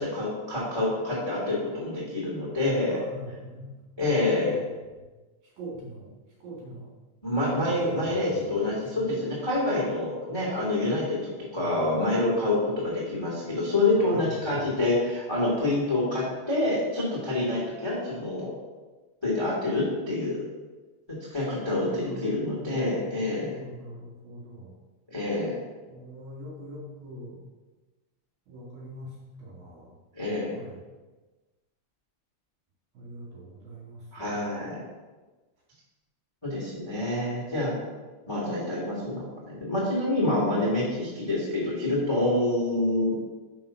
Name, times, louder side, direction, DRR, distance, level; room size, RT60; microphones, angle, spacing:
voice 1, 0.0-3.0 4.0-4.6 7.2-18.5 19.2-20.4 21.1-23.6 25.1-25.6 30.1-30.5 34.1-34.8 36.4-37.7 38.3-43.1, left 2 dB, 15° left, -6 dB, 0.9 m, -27 dB
voice 2, 2.9-4.4 5.0-5.1 5.4-6.1 6.4-6.9 7.3-9.0 11.6-11.9 13.9-14.7 21.8-24.7 25.9-27.4 28.5-30.0 30.5-30.9 32.9-34.6, equal, 55° right, -5 dB, 3.7 m, -43 dB
6.3 x 5.7 x 5.7 m, 1.2 s
omnidirectional pair, 5.2 m